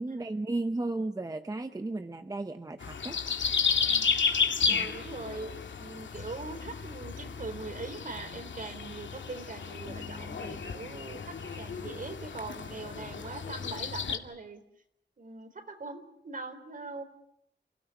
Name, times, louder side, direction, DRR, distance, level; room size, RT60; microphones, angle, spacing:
voice 1, 0.0-3.2 4.7-4.9, right 2 dB, 20° right, 8 dB, 0.9 m, -34 dB
sound 1, 2.8-14.2, left 6 dB, 85° left, 2.4 m, -32 dB
voice 2, 4.7-5.5 5.8-14.6 15.2-17.0, right 3 dB, 45° right, 8 dB, 4.0 m, -42 dB
Bass guitar, 9.9-12.9, left 3 dB, 25° left, 1.7 m, -51 dB
29.0 x 17.5 x 9.6 m, 0.75 s
wide cardioid pair, 165°, 19 cm